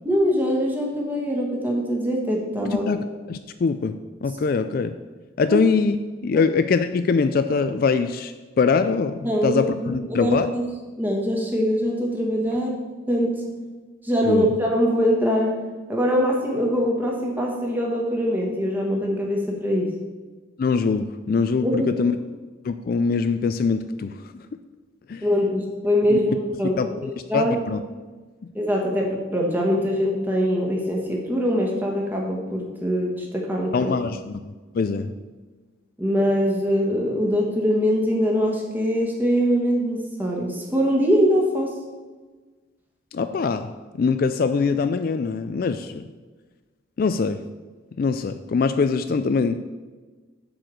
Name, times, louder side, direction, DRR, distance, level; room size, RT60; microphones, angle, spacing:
voice 1, 0.0-2.8 5.4-5.6 6.3-6.5 9.2-10.6 11.0-12.8 13.1-13.3 14.0-15.5 15.9-19.9 21.6-21.9 25.2-26.9 27.3-27.6 28.5-33.9 36.0-41.7, equal, 10° right, -1 dB, 1.4 m, -23 dB
voice 2, 2.6-4.9 5.4-6.0 6.2-10.5 14.2-14.5 20.6-22.1 22.6-24.1 25.1-25.3 26.1-26.2 26.8-27.8 33.7-35.1 43.1-43.7 44.0-46.0 47.0-47.4 48.0-49.6, left 5 dB, 45° left, 10 dB, 0.3 m, -23 dB
7.9 x 4.7 x 6.4 m, 1.3 s
head